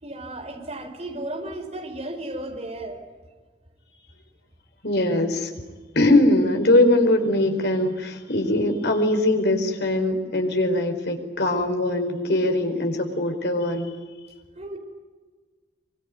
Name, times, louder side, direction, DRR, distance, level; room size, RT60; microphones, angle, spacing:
voice 1, 0.0-3.0 14.5-14.8, right 1 dB, 40° right, 3 dB, 4.9 m, -34 dB
voice 2, 4.8-5.5 5.9-13.9, left 1 dB, 65° left, 4 dB, 4.7 m, -21 dB
24.5 x 24.5 x 9.4 m, 1.4 s
head